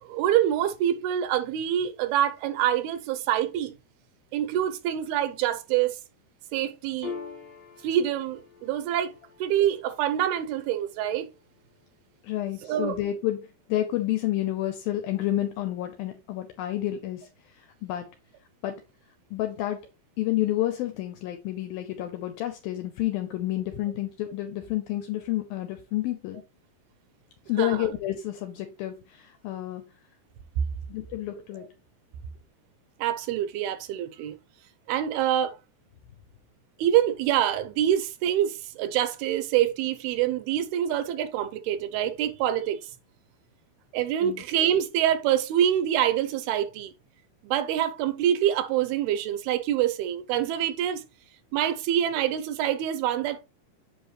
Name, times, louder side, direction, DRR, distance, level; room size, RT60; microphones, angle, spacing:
voice 1, 0.0-3.7 4.3-6.0 6.5-7.2 7.8-9.1 9.4-11.3 12.7-13.0 27.6-27.7 33.0-34.4 34.9-35.5 36.8-42.8 43.9-46.9 47.4-51.0 51.5-53.4, right 11 dB, 80° right, 2.5 m, -26 dB
Piano, 7.0-13.9, left 5 dB, 55° left, 1.7 m, -46 dB
voice 2, 12.2-18.1 18.6-18.8 19.3-19.8 20.2-26.4 27.5-29.8 30.9-31.7 44.2-44.4, left 14 dB, 75° left, 2.3 m, -30 dB
7.7 x 5.3 x 3.0 m
omnidirectional pair, 4.7 m